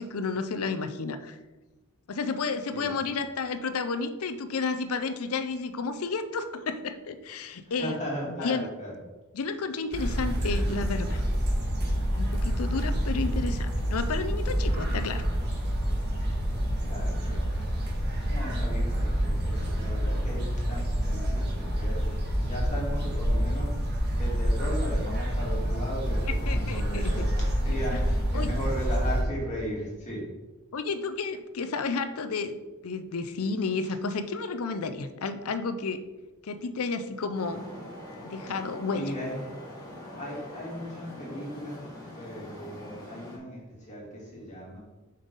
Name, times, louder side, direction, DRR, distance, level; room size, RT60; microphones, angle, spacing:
voice 1, 0.0-1.4 2.1-8.0 8.3-8.7 9.3-11.2 12.1-15.2 26.3-27.3 27.9-28.0 28.3-28.5 30.7-32.6 32.8-36.0 36.4-37.7 38.2-39.0, left 4 dB, 70° left, 10 dB, 0.5 m, -31 dB
voice 2, 2.7-3.2 7.6-9.0 16.9-17.5 18.3-22.1 22.3-23.7 24.1-27.2 27.6-30.3 38.9-39.6 40.1-44.8, equal, 35° left, -5 dB, 2.5 m, -37 dB
sound 1, 9.9-29.2, equal, 50° right, 1.7 m, -28 dB
Traffic noise roadway noise, 37.3-43.4, left 1 dB, 15° left, 1.8 m, -43 dB
7.2 x 5.4 x 4.0 m, 1.2 s
head